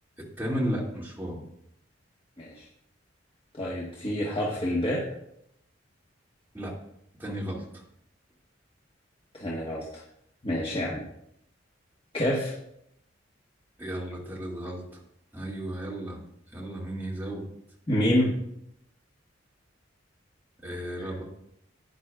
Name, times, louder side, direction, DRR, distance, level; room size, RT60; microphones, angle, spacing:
voice 1, 0.4-1.4 6.5-6.7 7.2-7.8 13.8-15.0 15.3-16.2 16.5-17.5 20.6-21.2, equal, 10° right, -4 dB, 2.4 m, -34 dB
voice 2, 3.5-5.1 9.3-10.0 10.4-11.1 12.1-12.5 17.9-18.4 21.0-21.1, equal, 30° left, -5 dB, 1.4 m, -27 dB
12.5 x 9.6 x 2.4 m, 0.76 s
head